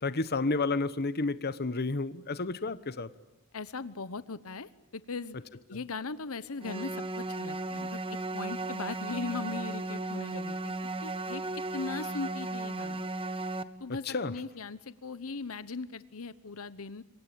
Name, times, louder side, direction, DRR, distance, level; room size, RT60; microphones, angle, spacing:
voice 1, 0.0-3.1 5.7-5.8 14.0-14.3, left 3 dB, 50° left, 14 dB, 1.1 m, -31 dB
voice 2, 3.5-5.4 5.7-10.7 11.0-13.1 13.8-17.0, left 4 dB, 70° left, 15 dB, 1.0 m, -39 dB
sound 1, 6.6-13.6, right 2 dB, 25° right, 1.3 m, -35 dB
27.5 x 23.5 x 8.7 m, 0.94 s
head